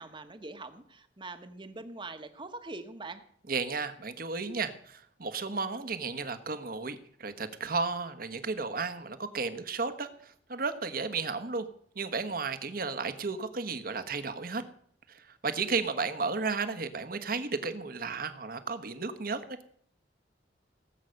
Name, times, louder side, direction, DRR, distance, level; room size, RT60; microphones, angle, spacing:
voice 1, 0.0-3.2, right 3 dB, 30° right, 9 dB, 1.3 m, -43 dB
voice 2, 3.5-11.7 11.9-14.6 15.1-19.4, right 4 dB, 55° right, 10 dB, 1.3 m, -33 dB
18.5 x 8.2 x 6.5 m, 0.64 s
head